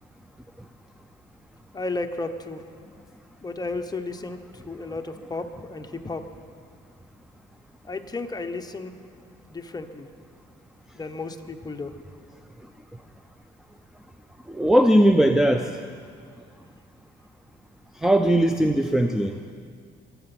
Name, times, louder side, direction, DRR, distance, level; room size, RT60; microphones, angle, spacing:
voice 1, 1.7-2.6 3.4-4.4 4.7-6.2 7.9-8.9 9.5-10.1 10.9-11.9, left 3 dB, 20° left, 6 dB, 1.0 m, -33 dB
voice 2, 14.5-15.7 18.0-19.3, right 1 dB, ahead, 7 dB, 0.5 m, -19 dB
24.0 x 8.0 x 6.1 m, 2.2 s
cardioid pair, 90°, 20 cm